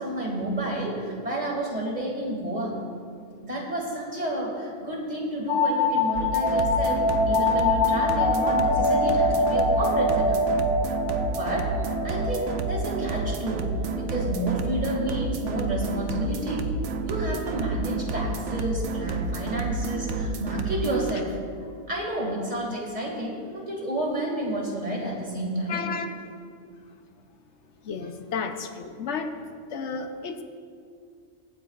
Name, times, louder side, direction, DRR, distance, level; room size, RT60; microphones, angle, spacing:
voice 1, 0.0-2.8 3.4-10.4 11.3-11.7 12.0-13.7 14.0-16.7 17.0-25.8, right 1 dB, 35° right, -2 dB, 2.4 m, -30 dB
sound 1, 5.5-14.9, left 2 dB, 25° left, 0.8 m, -25 dB
sound 2, 6.1-21.1, right 3 dB, 85° right, 1.0 m, -30 dB
voice 2, 25.7-26.2 27.9-29.3 29.7-30.4, left 5 dB, 80° left, 7 dB, 1.1 m, -32 dB
23.5 x 8.5 x 2.4 m, 2.3 s
omnidirectional pair, 1.2 m